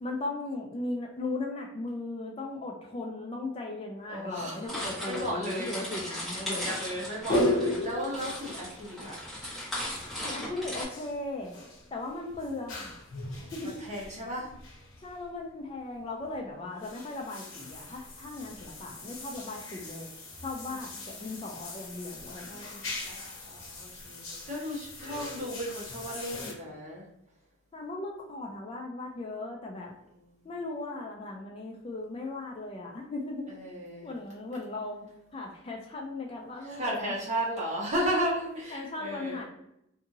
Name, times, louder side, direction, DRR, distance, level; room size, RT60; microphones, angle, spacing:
voice 1, 0.0-6.7 10.2-11.5 11.9-12.9 13.5-14.2 15.0-20.1 20.4-22.6 27.7-29.9 30.4-33.5 34.0-35.1 35.3-37.1 38.7-39.4, left 2 dB, 25° left, 1 dB, 0.4 m, -37 dB
voice 2, 4.1-4.6 5.1-5.9 6.4-9.2 13.2-13.5 13.8-14.5 22.5-27.0 33.6-34.0 36.7-39.4, equal, 35° right, -5 dB, 1.1 m, -34 dB
sound 1, 4.7-10.8, left 1 dB, ahead, 1.3 m, -37 dB
sound 2, 7.2-15.3 16.0-16.4 16.7-26.5, left 1 dB, 85° left, 0.8 m, -37 dB
2.6 x 2.6 x 2.6 m, 0.79 s
head